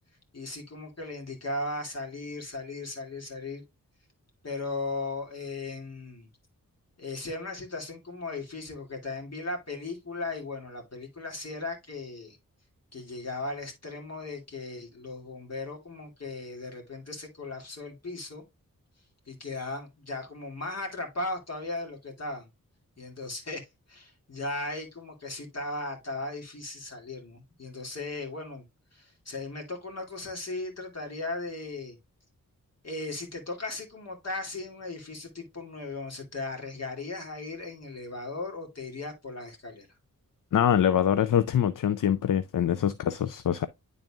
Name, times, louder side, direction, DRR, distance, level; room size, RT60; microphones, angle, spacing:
voice 1, 0.3-3.6 4.4-6.3 7.0-12.4 12.9-18.4 19.3-22.5 23.0-28.7 28.9-32.0 32.8-39.9, left 2 dB, 50° left, 2.3 m, -37 dB
voice 2, 40.5-43.7, left 9 dB, 70° left, 0.5 m, -24 dB
10.5 x 4.0 x 2.3 m
wide cardioid pair, 85°, 33 cm